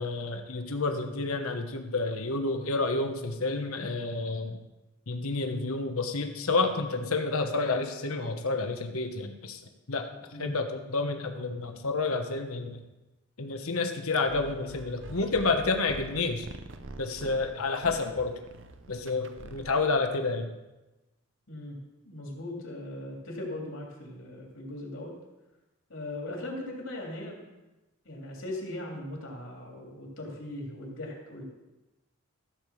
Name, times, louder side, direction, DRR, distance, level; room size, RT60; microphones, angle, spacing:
voice 1, 0.0-4.6 5.1-9.6 9.9-10.1 10.4-12.8 13.4-16.5 17.0-18.4 18.9-20.5, left 3 dB, 80° left, 6 dB, 1.1 m, -29 dB
sound 1, 14.2-20.0, right 2 dB, 55° right, 0.7 m, -45 dB
voice 2, 21.5-21.8 22.0-25.1 25.9-27.4 28.0-31.4, left 1 dB, 65° left, -1 dB, 3.1 m, -39 dB
14.5 x 5.0 x 7.1 m, 1.1 s
head